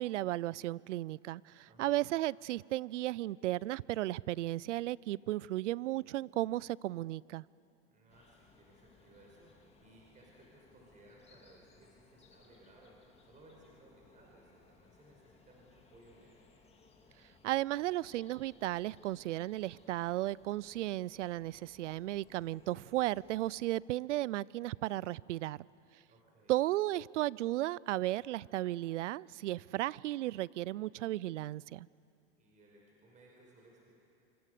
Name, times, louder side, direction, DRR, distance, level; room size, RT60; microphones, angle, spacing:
voice 1, 0.0-7.4 17.4-25.6 26.5-31.9, right 16 dB, 90° right, 24 dB, 0.5 m, -35 dB
voice 2, 1.7-2.0 7.9-16.4 26.1-26.6 32.4-33.9, right 1 dB, 20° right, -2 dB, 5.3 m, -61 dB
sound 1, 8.1-23.6, left 4 dB, 15° left, 2.4 m, -64 dB
26.0 x 25.0 x 6.8 m, 2.6 s
supercardioid pair, 125°, 35 cm